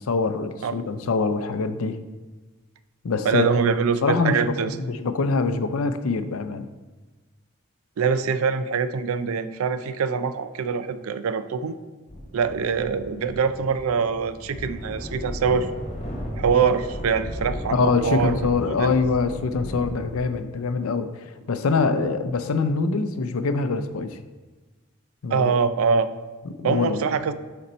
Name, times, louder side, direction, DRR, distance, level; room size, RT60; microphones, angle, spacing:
voice 1, 0.0-2.0 3.0-3.6 4.0-4.4 4.7-6.7 17.7-24.2 25.2-25.5 26.5-27.0, left 4 dB, 80° left, 10 dB, 0.5 m, -24 dB
voice 2, 3.2-4.7 8.0-11.7 12.3-15.7 16.4-18.4 18.7-18.9 21.9-22.0 25.3-26.1 26.6-27.3, right 6 dB, 80° right, 12 dB, 0.4 m, -24 dB
sound 1, 12.1-20.4, equal, 30° left, 1.3 m, -35 dB
6.7 x 4.3 x 4.2 m, 1.3 s
head